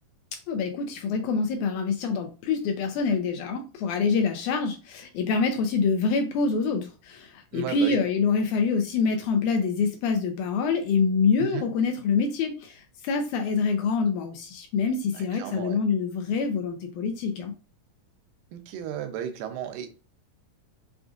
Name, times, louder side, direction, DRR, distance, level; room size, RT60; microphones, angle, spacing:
voice 1, 0.5-17.5, left 5 dB, 80° left, 1.9 m, -26 dB
voice 2, 7.5-8.0 11.4-11.7 15.1-15.8 18.5-19.9, right 10 dB, 85° right, 2.3 m, -34 dB
5.8 x 2.5 x 2.4 m
omnidirectional pair, 3.8 m